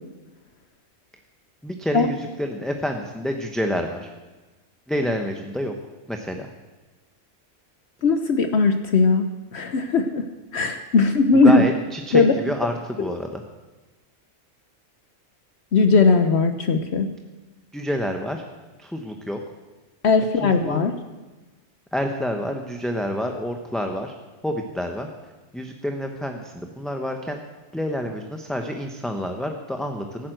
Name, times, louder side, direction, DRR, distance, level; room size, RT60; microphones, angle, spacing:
voice 1, 1.6-4.1 4.9-5.7 6.1-6.5 11.3-13.4 17.7-18.4 18.8-19.4 20.4-20.8 21.9-24.1 24.4-25.1 25.5-27.4 27.7-30.3, equal, ahead, 3 dB, 0.8 m, -28 dB
voice 2, 8.0-9.3 9.5-10.2 10.5-11.6 12.1-12.3 15.7-17.1 20.0-20.9, left 4 dB, 65° left, 8 dB, 1.1 m, -18 dB
15.5 x 9.3 x 7.8 m, 1.2 s
omnidirectional pair, 1.3 m